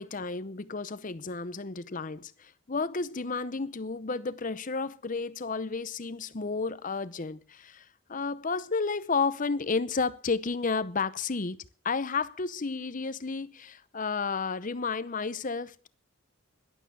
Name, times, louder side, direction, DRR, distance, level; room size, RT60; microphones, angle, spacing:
voice 1, 0.0-15.9, left 4 dB, 40° left, 0.7 m, -32 dB
12.0 x 11.5 x 7.0 m
head